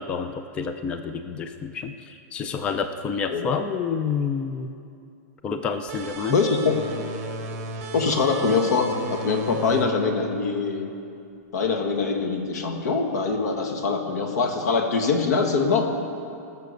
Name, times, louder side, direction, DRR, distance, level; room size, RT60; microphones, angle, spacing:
voice 1, 0.0-4.7 5.4-6.4, left 6 dB, 10° left, 8 dB, 0.3 m, -29 dB
sound 1, 5.9-11.2, right 1 dB, 35° right, 1.4 m, -35 dB
voice 2, 6.3-6.8 7.9-10.9 11.5-15.9, left 4 dB, 85° left, 4 dB, 1.7 m, -23 dB
18.5 x 6.8 x 6.6 m, 2.6 s
supercardioid pair, 170°, 9 cm